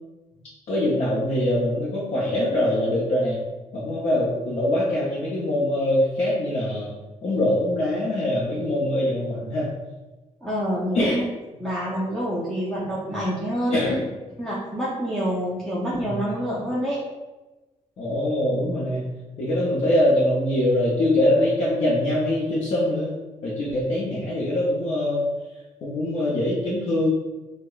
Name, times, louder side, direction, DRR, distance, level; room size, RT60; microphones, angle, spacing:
voice 1, 0.7-3.4 3.7-6.9 7.2-9.7 10.9-11.2 13.7-14.0 15.9-16.1 18.0-19.0 19.4-23.1 23.4-25.2 25.8-27.1, left 1 dB, 55° left, -7 dB, 0.7 m, -23 dB
voice 2, 10.4-11.2 11.6-13.8 14.4-17.0, equal, 5° left, -8 dB, 0.6 m, -27 dB
4.6 x 2.2 x 2.3 m, 1.1 s
cardioid pair, 135°, 13 cm